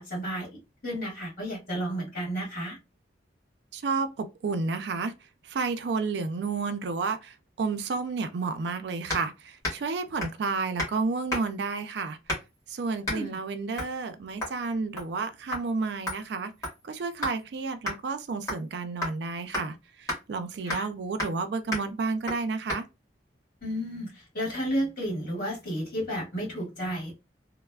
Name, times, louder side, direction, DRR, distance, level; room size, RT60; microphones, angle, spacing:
voice 1, 0.0-2.8 13.1-13.4 20.6-20.9 23.6-27.1, equal, 50° left, 1.7 m, -32 dB
voice 2, 3.7-5.1 5.5-12.2 12.7-16.5 16.9-22.9, right 4 dB, 65° right, 0.4 m, -31 dB
sound 1, 9.1-9.3 9.6-9.9 10.2-10.4 10.8-11.0 11.3-11.6 12.3-12.6 13.0-13.2 13.8-14.0 14.4-14.6 15.0-15.2 15.5-15.6 16.1-17.4 17.9-18.0 18.5-18.7 19.0-19.2 19.5-19.7 20.1-20.2 20.7-20.9 21.2-21.4 21.7-21.9 22.3-22.4 22.7-22.8, left 1 dB, 20° left, 1.4 m, -33 dB
3.1 x 2.0 x 2.2 m
head